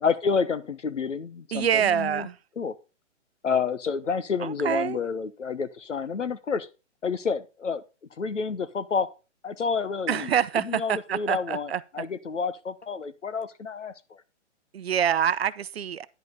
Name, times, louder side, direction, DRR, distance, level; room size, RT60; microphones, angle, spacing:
voice 1, 0.0-2.3 2.6-2.8 3.4-6.7 7.0-7.8 8.2-9.1 9.4-10.3 10.6-14.2, left 5 dB, 75° left, 1.3 m, -29 dB
voice 2, 1.5-2.4 4.4-5.0 10.1-11.8 14.7-16.1, right 8 dB, 55° right, 0.7 m, -26 dB
10.5 x 5.3 x 5.4 m
figure-of-eight pair, 135°, 37 cm